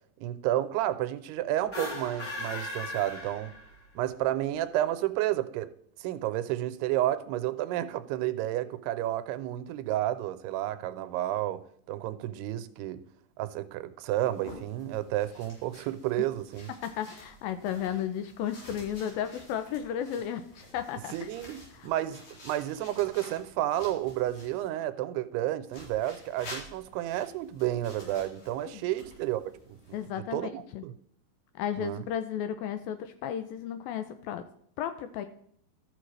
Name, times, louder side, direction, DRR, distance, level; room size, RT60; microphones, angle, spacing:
voice 1, 0.2-3.5 4.0-5.7 6.0-13.0 13.4-16.7 21.1-29.4 29.7-30.9 31.8-32.0, right 13 dB, 85° right, 2.6 m, -31 dB
sound 1, 1.6-3.9, left 2 dB, 30° left, 3.3 m, -38 dB
sound 2, 14.1-24.7 25.7-30.1, left 1 dB, 60° left, 5.3 m, -50 dB
voice 2, 16.8-21.3 21.7-21.9 28.6-28.8 29.9-30.8 31.6-34.4 34.8-35.3, left 9 dB, 80° left, 2.1 m, -34 dB
14.0 x 6.4 x 3.2 m
omnidirectional pair, 4.6 m